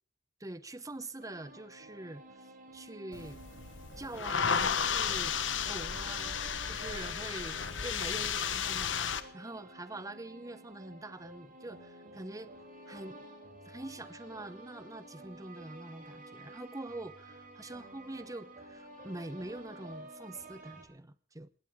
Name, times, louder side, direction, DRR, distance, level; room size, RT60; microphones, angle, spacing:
voice 1, 0.4-3.4 4.0-12.5 12.9-13.3 13.6-21.5, right 2 dB, 20° right, 13 dB, 1.0 m, -45 dB
sound 1, 1.2-20.8, right 1 dB, 45° right, 4.9 m, -51 dB
sound 2, 3.1-9.2, left 7 dB, 70° left, 1.2 m, -33 dB
21.5 x 17.5 x 3.7 m, 0.36 s
head